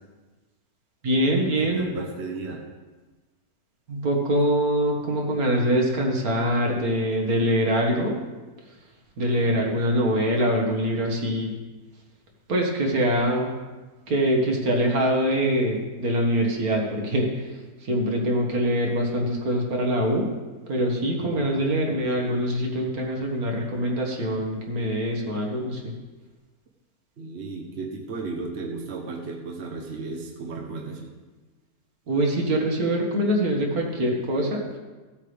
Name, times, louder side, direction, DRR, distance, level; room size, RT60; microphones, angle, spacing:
voice 1, 1.0-1.9 3.9-8.1 9.2-11.5 12.5-13.5 14.1-17.5 17.8-20.3 20.7-25.9 32.1-34.6, equal, 65° right, 0 dB, 2.0 m, -24 dB
voice 2, 1.6-2.6 9.2-9.8 21.2-21.7 27.2-31.1, right 3 dB, 45° right, 1 dB, 1.2 m, -35 dB
15.5 x 8.4 x 3.4 m, 1.2 s
omnidirectional pair, 1.7 m